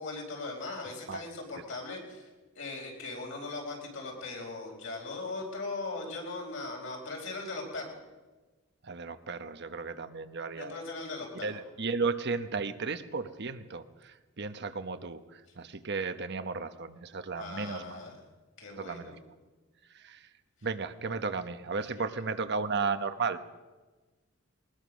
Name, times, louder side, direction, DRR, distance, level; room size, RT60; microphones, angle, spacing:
voice 1, 0.0-2.3 2.5-8.0 10.6-11.6 17.3-18.2 18.6-19.2, left 3 dB, 65° left, 0 dB, 4.7 m, -39 dB
voice 2, 8.8-10.7 11.4-18.0 18.8-19.2 19.9-20.2 20.6-23.4, right 4 dB, 55° right, 10 dB, 1.0 m, -34 dB
21.0 x 20.0 x 6.3 m, 1.3 s
head